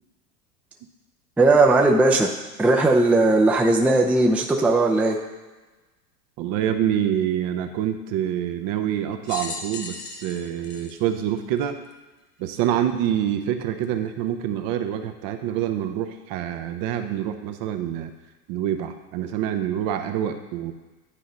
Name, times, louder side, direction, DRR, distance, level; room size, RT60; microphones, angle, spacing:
voice 1, 1.4-2.3 2.6-5.2, right 2 dB, 5° right, 1 dB, 0.5 m, -18 dB
voice 2, 6.4-11.8 12.4-18.1 18.5-20.7, right 10 dB, 45° right, 7 dB, 0.7 m, -26 dB
sound 1, 9.2-11.9 12.6-12.7 13.8-13.9, left 4 dB, 90° left, 1.0 m, -37 dB
10.0 x 4.0 x 3.9 m, 1.2 s
hypercardioid pair, 95°, 46 cm